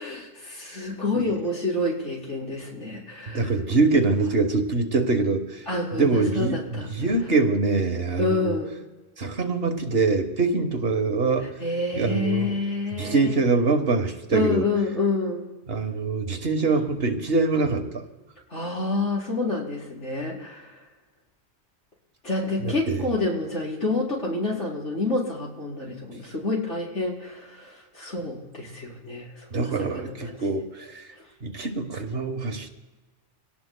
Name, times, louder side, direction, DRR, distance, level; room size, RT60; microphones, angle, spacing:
voice 1, 0.0-3.5 5.7-6.9 8.2-8.7 11.4-13.4 14.3-15.5 18.5-20.8 22.2-30.4, left 2 dB, 70° left, -5 dB, 4.8 m, -28 dB
voice 2, 3.3-5.6 5.9-8.5 9.2-11.5 11.9-12.5 12.9-14.7 15.7-18.0 22.6-23.0 29.5-31.0 31.4-32.7, right 3 dB, 55° right, 5 dB, 1.4 m, -24 dB
25.5 x 18.0 x 2.2 m, 1.2 s
omnidirectional pair, 1.2 m